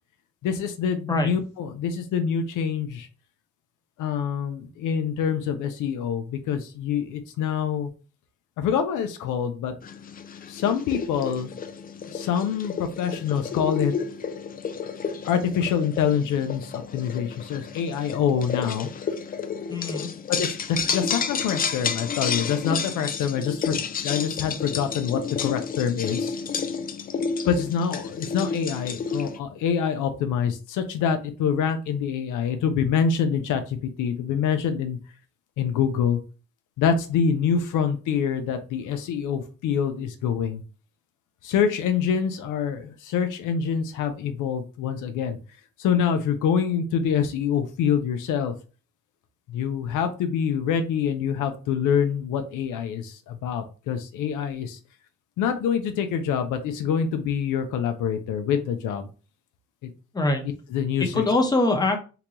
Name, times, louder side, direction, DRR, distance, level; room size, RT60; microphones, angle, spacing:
voice 1, 0.4-1.4 1.8-3.1 4.0-7.9 8.6-9.7 10.5-11.5 12.1-13.9 15.2-18.9 20.3-23.8 24.0-26.3 27.5-33.6 34.0-35.0 35.6-36.2 36.8-40.6 41.5-45.4 45.8-48.5 49.5-53.0 53.4-54.8 55.4-59.0 60.7-61.0, left 7 dB, 85° left, 7 dB, 0.6 m, -25 dB
sound 1, 9.8-29.4, left 6 dB, 30° left, 0.3 m, -31 dB
voice 2, 19.7-20.1 60.1-60.4 61.0-62.0, left 2 dB, 15° left, 3 dB, 0.8 m, -23 dB
3.8 x 2.2 x 3.0 m, 0.34 s
cardioid pair, 90°, 30 cm